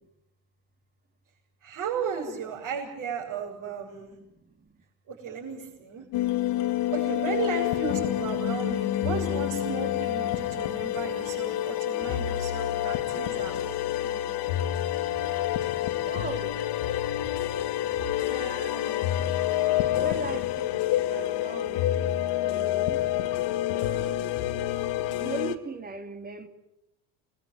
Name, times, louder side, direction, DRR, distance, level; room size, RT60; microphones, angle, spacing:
voice 1, 1.6-4.2 5.1-6.0 6.9-13.8 14.0-14.3, right 6 dB, 40° right, 7.3 m, -35 dB
sound 1, 6.1-25.6, left 13 dB, 60° left, 2.1 m, -28 dB
voice 2, 16.0-16.6 18.3-19.2 20.0-22.1 22.4-23.0 23.7-24.3 25.1-26.5, right 3 dB, 20° right, 2.8 m, -39 dB
29.0 x 21.5 x 9.6 m
cardioid pair, 135°, 46 cm